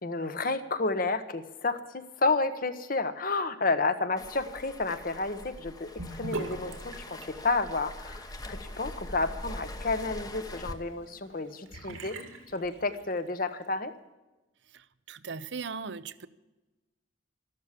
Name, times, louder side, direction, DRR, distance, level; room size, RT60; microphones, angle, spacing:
voice 1, 0.0-12.2 12.5-13.9, left 3 dB, 45° left, 10 dB, 1.1 m, -31 dB
Waves surf, 4.2-10.7, left 1 dB, 20° left, 1.0 m, -42 dB
Sink (filling or washing) / Bathtub (filling or washing), 6.0-13.3, right 2 dB, 85° right, 2.4 m, -44 dB
voice 2, 14.7-16.3, right 5 dB, 60° right, 16 dB, 0.7 m, -39 dB
13.5 x 12.5 x 7.5 m, 1.1 s
head